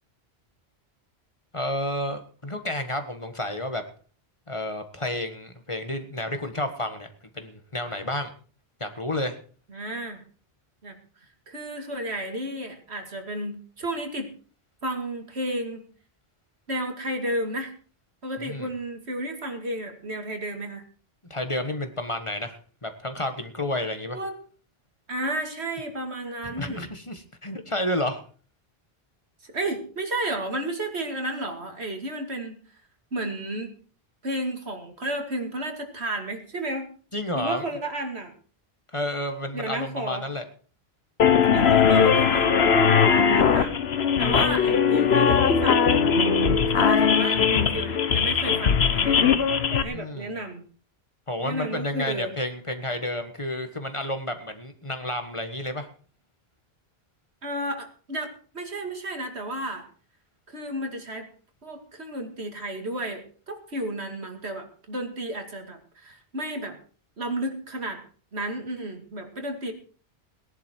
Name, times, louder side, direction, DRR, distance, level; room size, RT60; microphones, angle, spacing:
voice 1, 1.5-3.8 4.5-7.1 7.3-8.3 8.8-9.4 18.4-18.7 21.3-24.2 26.4-28.2 37.1-37.6 38.9-40.4 49.9-50.3 51.3-55.9, left 1 dB, 30° left, 7 dB, 1.5 m, -30 dB
voice 2, 9.7-10.2 10.8-10.9 11.5-14.3 14.8-15.8 16.7-17.7 18.2-20.8 24.1-24.4 25.1-26.9 29.4-32.6 33.1-33.7 34.2-36.9 37.3-38.3 39.5-40.3 41.5-43.8 44.2-46.0 46.7-49.3 49.7-50.6 51.4-52.3 57.4-59.8 60.5-61.3 61.6-66.8 67.2-68.0 68.3-69.7, right 1 dB, 85° right, 5 dB, 2.7 m, -32 dB
sound 1, 41.2-49.8, left 6 dB, 75° left, 1.3 m, -20 dB
18.5 x 11.0 x 4.6 m, 0.41 s
omnidirectional pair, 1.1 m